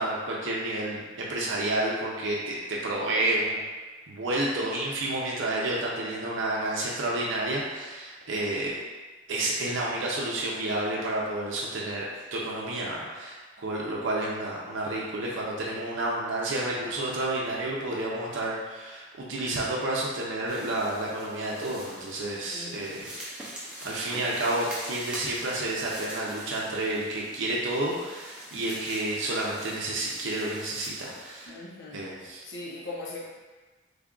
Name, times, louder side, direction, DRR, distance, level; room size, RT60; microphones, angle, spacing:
voice 1, 0.0-3.6 4.1-8.8 9.3-12.1 12.3-23.4 23.8-31.5 31.9-32.4, right 1 dB, 70° right, -4 dB, 0.5 m, -30 dB
sound 1, 20.5-31.5, equal, 5° right, 0.5 m, -43 dB
voice 2, 22.5-23.1 31.5-32.0 32.4-33.3, left 2 dB, 65° left, -6 dB, 0.6 m, -40 dB
3.3 x 2.4 x 3.7 m, 1.3 s
head